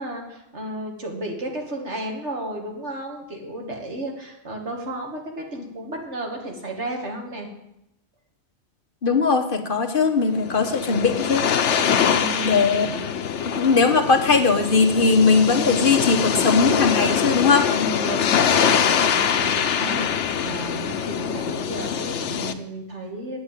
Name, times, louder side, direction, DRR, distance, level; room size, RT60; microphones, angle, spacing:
voice 1, 0.0-7.5 11.9-13.0 17.7-23.4, right 1 dB, 75° right, 1 dB, 2.5 m, -33 dB
voice 2, 9.0-11.5 12.4-12.9 13.6-17.7, left 4 dB, 50° left, 6 dB, 1.2 m, -19 dB
sound 1, 10.3-22.5, left 7 dB, 80° left, 1.1 m, -23 dB
9.0 x 8.7 x 9.0 m, 0.85 s
omnidirectional pair, 1.2 m